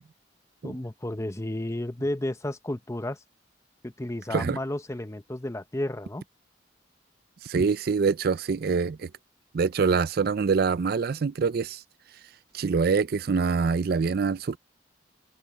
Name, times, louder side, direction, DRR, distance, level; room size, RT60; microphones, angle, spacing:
voice 1, 0.6-3.2 3.8-6.2, left 1 dB, 15° left, 0.8 m, -32 dB
voice 2, 7.4-9.1 9.5-11.8 12.5-14.6, right 5 dB, 55° right, 0.4 m, -25 dB
open air
head